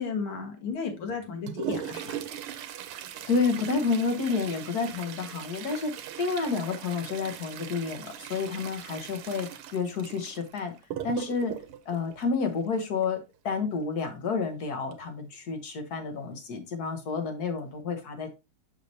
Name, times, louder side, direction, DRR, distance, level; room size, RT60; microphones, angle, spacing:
voice 1, 0.0-2.2, left 5 dB, 70° left, 4 dB, 2.3 m, -33 dB
Toilet flush, 1.1-13.0 14.9-15.0 15.3-15.4 16.2-16.3 17.0-17.2 17.7-17.8, right 10 dB, 80° right, 1.6 m, -39 dB
voice 2, 3.3-10.7 11.0-11.6 11.8-18.3, left 4 dB, 55° left, 5 dB, 1.3 m, -30 dB
6.6 x 6.3 x 2.7 m, 0.27 s
omnidirectional pair, 2.4 m